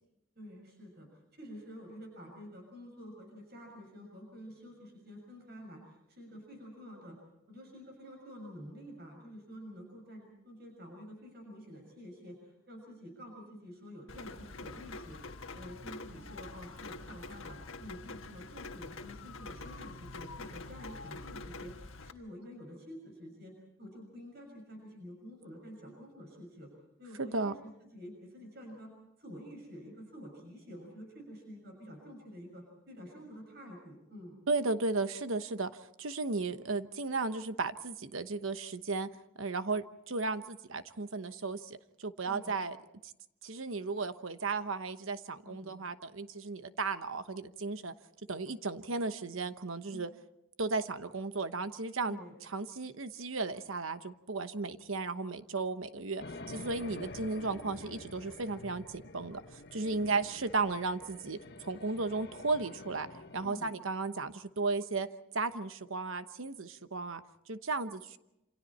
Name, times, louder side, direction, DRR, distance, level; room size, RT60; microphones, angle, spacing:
voice 1, 0.4-1.1 1.3-7.2 7.5-15.2 15.5-21.7 22.0-26.7 27.0-28.9 29.2-34.4 42.2-42.6 45.4-45.8 49.9-50.0 52.0-52.3 56.3-56.7 60.0-60.3 63.4-63.7, equal, 50° right, 2 dB, 6.4 m, -49 dB
Rain, 14.1-22.1, left 3 dB, 80° left, 1.4 m, -46 dB
voice 2, 27.2-27.5 34.5-35.7 36.0-39.1 39.4-42.8 43.4-47.9 48.3-50.1 50.6-52.2 52.5-63.1 63.3-65.1 65.3-67.2 67.5-68.2, right 3 dB, 80° right, 11 dB, 1.1 m, -35 dB
sound 1, 56.2-63.5, left 3 dB, 55° left, 1.2 m, -48 dB
28.0 x 27.0 x 4.3 m, 0.87 s
head